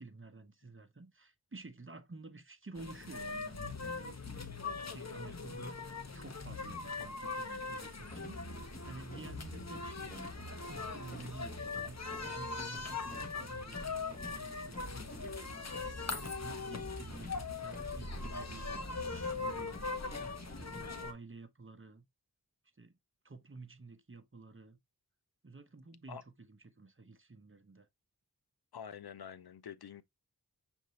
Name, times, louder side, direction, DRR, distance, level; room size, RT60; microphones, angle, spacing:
voice 1, 0.0-4.6 4.9-19.8 20.5-22.1 22.8-22.9 23.2-24.8 25.4-27.9, right 3 dB, 35° right, 0.8 m, -52 dB
sound 1, 2.8-21.1, left 4 dB, 45° left, 0.8 m, -41 dB
sound 2, 8.0-21.1, equal, 20° left, 1.2 m, -49 dB
voice 2, 28.7-30.0, left 8 dB, 75° left, 0.5 m, -47 dB
6.5 x 2.7 x 3.1 m
wide cardioid pair, 40°, 38 cm